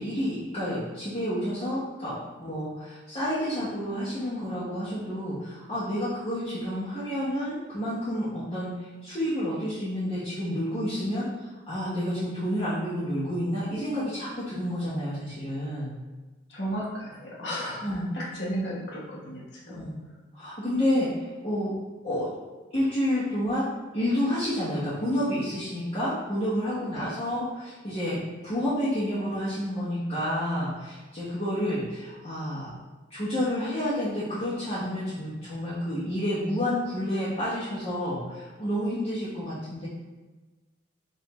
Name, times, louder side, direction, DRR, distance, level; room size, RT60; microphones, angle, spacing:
voice 1, 0.0-8.7 9.0-11.3 11.7-15.9 17.8-18.1 19.7-20.0 20.3-21.1 21.4-21.7 22.0-22.3 22.7-23.6 23.9-32.7 33.1-39.9, equal, 30° left, -12 dB, 1.0 m, -29 dB
voice 2, 16.5-19.9 26.9-27.1, equal, 55° left, -5 dB, 1.1 m, -34 dB
5.4 x 2.6 x 3.0 m, 1.2 s
head